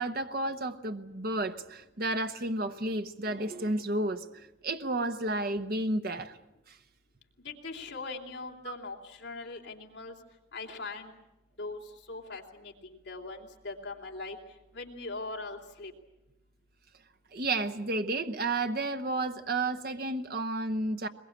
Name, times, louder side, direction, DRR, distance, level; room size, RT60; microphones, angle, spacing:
voice 1, 0.0-6.4 6.7-6.8 17.3-21.1, right 2 dB, 50° right, 7 dB, 1.1 m, -32 dB
voice 2, 7.4-10.1 10.5-11.1 11.6-11.8 12.1-14.4 14.7-15.9, left 3 dB, 60° left, 0 dB, 3.1 m, -41 dB
22.0 x 21.5 x 8.7 m, 0.96 s
head